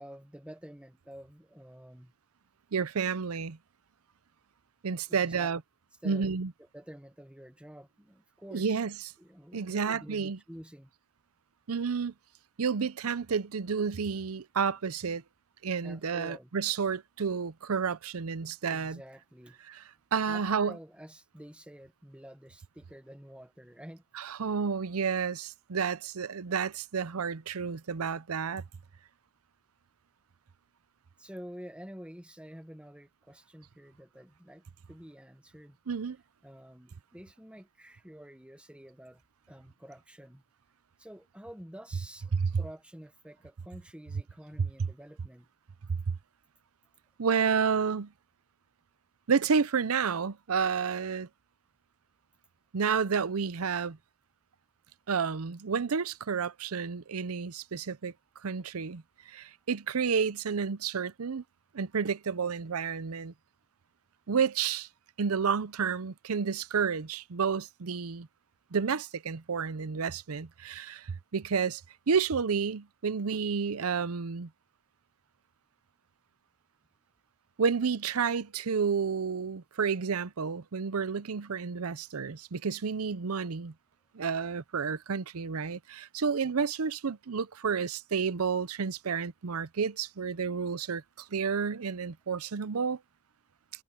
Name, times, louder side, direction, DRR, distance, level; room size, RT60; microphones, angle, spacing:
voice 1, 0.0-2.1 5.1-5.5 6.0-6.3 6.7-8.8 9.2-10.9 15.8-16.5 18.7-19.6 20.3-24.0 31.2-35.8 36.4-39.2 39.5-40.4 41.0-45.5, equal, 5° right, 1.3 m, -49 dB
voice 2, 2.7-3.6 4.8-5.6 6.0-6.5 8.5-8.9 9.5-10.4 11.7-12.1 12.6-15.2 15.6-19.0 19.7-19.8 20.1-20.8 24.1-28.6 35.9-36.2 42.3-42.5 44.6-44.9 45.9-46.2 47.2-48.1 49.3-51.3 52.7-54.0 55.1-58.1 58.4-61.4 61.7-63.3 64.3-64.9 65.2-68.3 68.7-71.8 72.1-74.5 77.6-83.7 84.1-93.0, right 6 dB, 90° right, 0.7 m, -30 dB
head